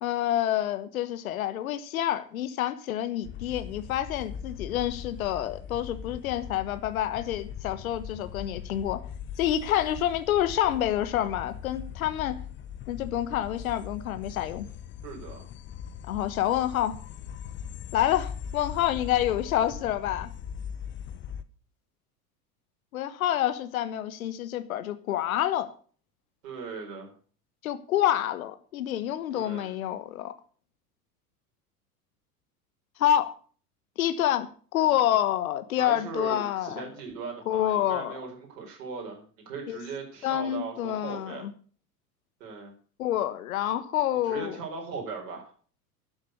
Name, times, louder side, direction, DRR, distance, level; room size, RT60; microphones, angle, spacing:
voice 1, 0.0-9.0 9.4-12.4 12.9-14.7 16.1-17.0 17.9-20.3 22.9-25.7 27.6-30.3 33.0-33.3 34.0-36.8 37.5-38.2 39.7-39.8 40.2-41.5 43.0-44.6, left 12 dB, 60° left, 1.3 m, -28 dB
sound 1, 3.2-21.4, left 9 dB, 25° left, 0.8 m, -40 dB
voice 2, 15.0-15.4 26.4-27.1 29.3-29.7 35.8-41.4 42.4-42.7 44.2-45.5, right 4 dB, 55° right, 4.5 m, -38 dB
12.5 x 7.4 x 8.1 m
figure-of-eight pair, 80°, 46 cm